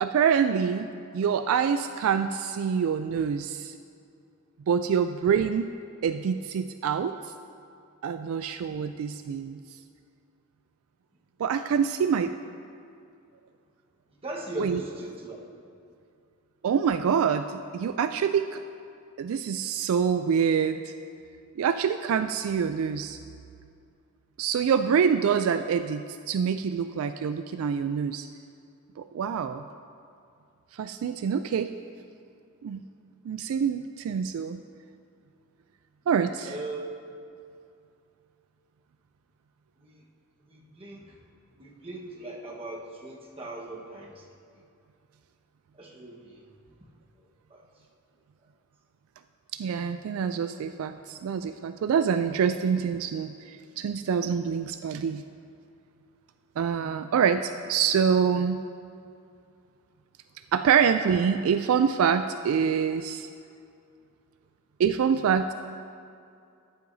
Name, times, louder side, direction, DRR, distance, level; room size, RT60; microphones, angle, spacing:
voice 1, 0.0-3.7 4.7-5.7 6.0-7.2 8.0-9.6 11.4-12.3 14.6-14.8 16.6-18.6 19.2-20.9 21.6-23.2 24.4-28.3 29.0-29.6 30.7-31.7 32.6-32.8 33.2-34.6 36.1-36.6 49.5-55.2 56.6-58.6 60.5-63.3 64.8-65.5, right 7 dB, 70° right, 10 dB, 0.3 m, -26 dB
voice 2, 14.2-15.7 36.4-37.1 39.8-40.0 40.5-41.2 41.5-44.2 45.7-46.4 47.2-47.6, right 2 dB, 25° right, -2 dB, 1.2 m, -39 dB
14.0 x 10.5 x 2.7 m, 2.4 s
head